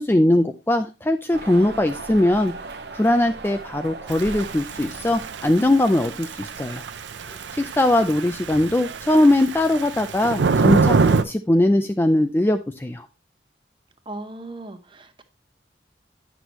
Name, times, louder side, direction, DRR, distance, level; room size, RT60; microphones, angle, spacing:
voice 1, 0.0-2.5 2.9-6.8 7.3-13.1, left 1 dB, 10° left, 0.3 m, -20 dB
sound 1, 1.3-7.5, right 3 dB, 70° right, 0.9 m, -39 dB
Thunder / Rain, 4.1-11.2, right 4 dB, 85° right, 0.5 m, -25 dB
voice 2, 14.1-15.2, right 2 dB, 25° right, 0.8 m, -37 dB
9.8 x 6.1 x 2.9 m
head